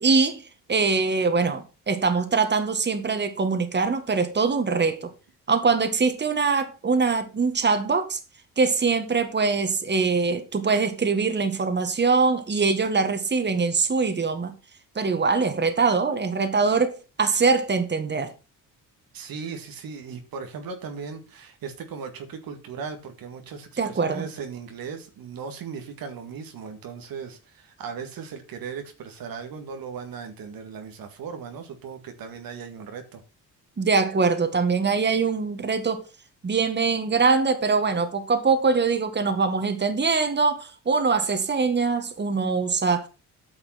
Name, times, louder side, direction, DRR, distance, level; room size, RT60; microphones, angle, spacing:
voice 1, 0.0-0.4 0.7-5.1 5.5-8.2 8.6-14.5 15.0-18.3 23.8-24.2 33.8-36.0 36.4-43.1, right 4 dB, 30° right, 1.8 m, -23 dB
voice 2, 19.1-33.2, right 6 dB, 75° right, 2.0 m, -37 dB
9.3 x 5.8 x 5.8 m
cardioid pair, 85°, 36 cm